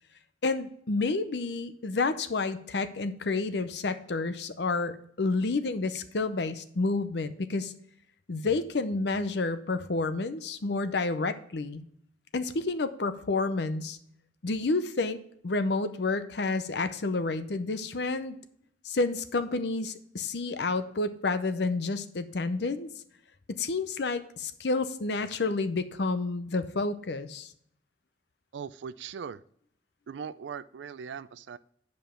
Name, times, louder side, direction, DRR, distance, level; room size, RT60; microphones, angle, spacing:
voice 1, 0.4-7.7 8.3-11.8 12.3-14.0 14.4-18.3 18.8-22.9 23.5-27.5, left 3 dB, 65° left, 11 dB, 0.6 m, -30 dB
voice 2, 28.5-29.4 30.1-31.6, right 6 dB, 75° right, 17 dB, 0.4 m, -39 dB
9.1 x 5.3 x 4.4 m, 0.67 s
head